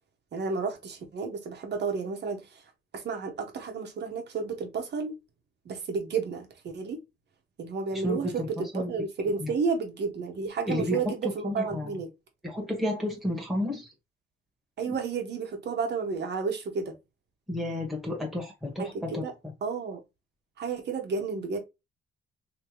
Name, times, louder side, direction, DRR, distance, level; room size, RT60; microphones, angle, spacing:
voice 1, 0.3-2.4 2.9-5.1 5.6-7.0 7.6-12.1 14.8-16.9 18.8-19.3 19.6-20.0 20.6-21.6, right 5 dB, 60° right, 1.3 m, -31 dB
voice 2, 8.0-8.5 8.7-8.9 9.4-9.5 10.6-12.0 12.4-13.9 17.5-19.2, left 1 dB, ahead, 1.5 m, -31 dB
3.1 x 3.1 x 3.0 m
cardioid pair, 90°, 20 cm